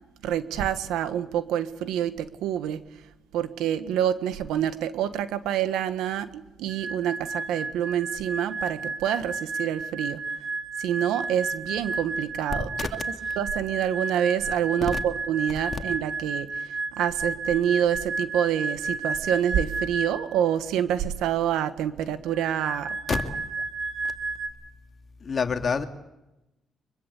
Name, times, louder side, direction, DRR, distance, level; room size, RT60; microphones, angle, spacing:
voice 1, 0.2-2.8 3.3-10.2 10.8-12.7 13.4-23.0, right 10 dB, 90° right, 11 dB, 1.4 m, -27 dB
sound 1, 6.7-20.4 22.3-24.5, right 3 dB, 35° right, 6.9 m, -32 dB
voice 2, 25.2-25.9, left 5 dB, 45° left, 5 dB, 2.5 m, -26 dB
24.5 x 22.0 x 8.3 m, 0.94 s
cardioid pair, 90°, 0 cm